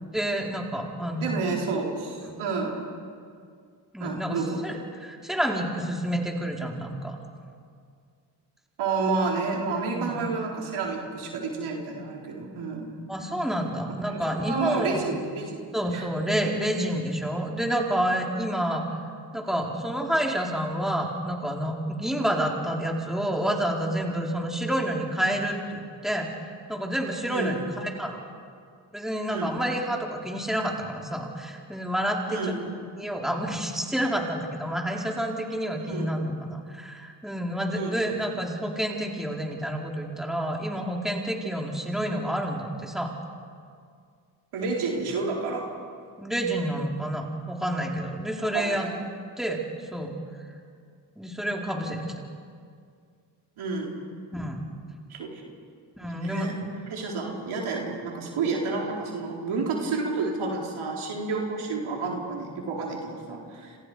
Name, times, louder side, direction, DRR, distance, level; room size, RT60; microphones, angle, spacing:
voice 1, 0.1-1.4 2.2-2.4 3.9-7.2 10.0-10.2 13.1-15.1 15.7-18.8 19.3-28.2 28.9-32.4 33.0-43.1 46.2-48.9 49.4-49.6 49.9-50.1 51.2-52.1 54.3-54.6 56.0-56.7, right 1 dB, ahead, -1 dB, 4.1 m, -29 dB
voice 2, 1.2-2.7 4.0-4.6 8.8-12.9 14.1-15.6 15.9-16.1 27.3-27.7 29.3-29.6 32.3-32.7 35.8-36.2 37.7-38.0 44.5-45.7 48.4-48.8 53.6-54.0 55.1-55.4 56.0-56.5 56.9-63.8, right 4 dB, 80° right, -1 dB, 4.3 m, -30 dB
28.5 x 26.5 x 5.0 m, 2.2 s
supercardioid pair, 60°, 48 cm